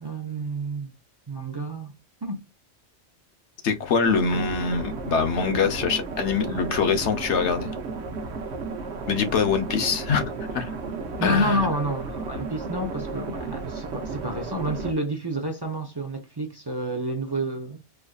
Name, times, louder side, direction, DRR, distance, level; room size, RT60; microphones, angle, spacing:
voice 1, 0.0-0.9 1.3-1.9 2.2-2.4 11.2-17.8, right 1 dB, 25° right, 0.6 m, -29 dB
voice 2, 3.6-7.7 9.1-10.2 10.5-10.7 11.2-11.7, left 5 dB, 85° left, 1.1 m, -24 dB
sound 1, 4.0-14.9, right 4 dB, 75° right, 1.0 m, -33 dB
4.6 x 2.6 x 2.3 m
omnidirectional pair, 1.2 m